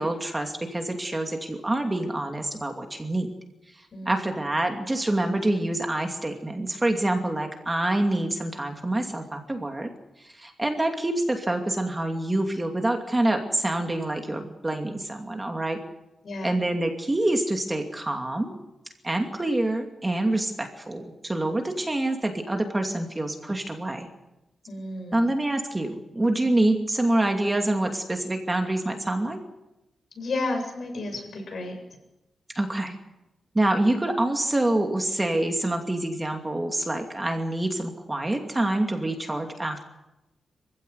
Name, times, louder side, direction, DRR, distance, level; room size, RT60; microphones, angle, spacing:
voice 1, 0.0-3.3 3.7-9.9 10.2-15.8 16.4-18.5 19.0-24.1 25.1-29.4 32.5-33.0 33.5-39.8, right 1 dB, 15° right, 4 dB, 2.6 m, -26 dB
voice 2, 3.9-4.3 16.2-16.6 24.7-25.3 30.1-31.8, left 2 dB, 60° left, 3 dB, 7.8 m, -32 dB
26.0 x 16.0 x 9.6 m, 0.96 s
wide cardioid pair, 125°, 0 cm